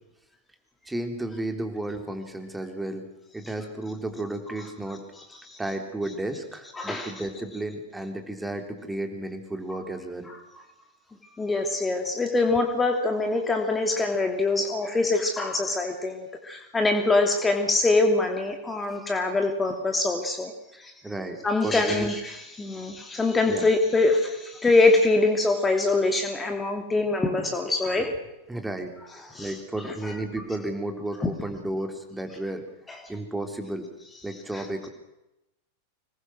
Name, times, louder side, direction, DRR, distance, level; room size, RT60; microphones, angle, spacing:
voice 1, 0.9-3.1 3.3-5.1 5.6-10.3 21.0-22.1 23.5-23.7 28.5-28.9 29.4-32.7 33.1-33.9 34.2-34.9, right 1 dB, 5° right, 5 dB, 3.6 m, -33 dB
voice 2, 6.7-7.3 10.3-10.6 11.4-20.5 20.8-20.9 21.4-28.1 29.3-29.6 30.0-30.1 31.2-31.3 32.9-33.0 34.5-34.6, left 2 dB, 15° left, 4 dB, 2.9 m, -24 dB
26.0 x 21.5 x 6.3 m, 0.91 s
figure-of-eight pair, 90°, 0 cm